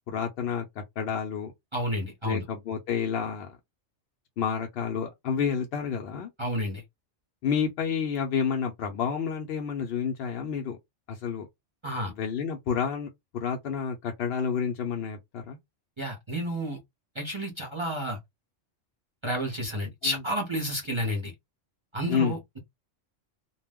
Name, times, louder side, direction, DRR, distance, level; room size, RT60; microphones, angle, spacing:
voice 1, 0.1-1.5 2.2-3.5 4.4-6.3 7.4-10.8 11.1-11.5 12.2-15.6 20.0-20.2 22.1-22.4, left 7 dB, 65° left, 0.7 m, -30 dB
voice 2, 1.7-2.4 6.4-6.8 11.8-12.1 16.0-16.8 17.2-18.2 19.2-21.3 21.9-22.6, equal, 30° right, 0.6 m, -30 dB
2.3 x 2.0 x 3.4 m
omnidirectional pair, 1.3 m